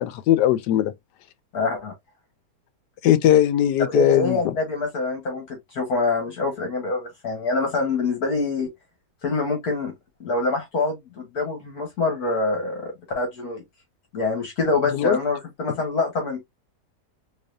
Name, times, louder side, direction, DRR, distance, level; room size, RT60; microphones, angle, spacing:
voice 1, 0.0-0.9 3.0-4.5 14.9-15.2, left 12 dB, 90° left, 1.2 m, -19 dB
voice 2, 1.5-1.9 3.9-8.7 9.2-9.9 10.2-13.6 14.1-16.4, left 3 dB, 65° left, 1.7 m, -25 dB
4.0 x 3.0 x 2.5 m
omnidirectional pair, 1.7 m